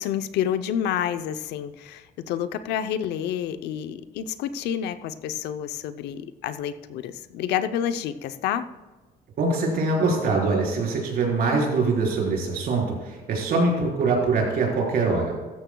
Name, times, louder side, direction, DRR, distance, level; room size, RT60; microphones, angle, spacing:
voice 1, 0.0-8.7, left 9 dB, 80° left, 10 dB, 0.7 m, -29 dB
voice 2, 9.4-15.4, right 3 dB, 60° right, -2 dB, 4.3 m, -23 dB
15.5 x 13.5 x 2.3 m, 1.3 s
cardioid pair, 110°, 17 cm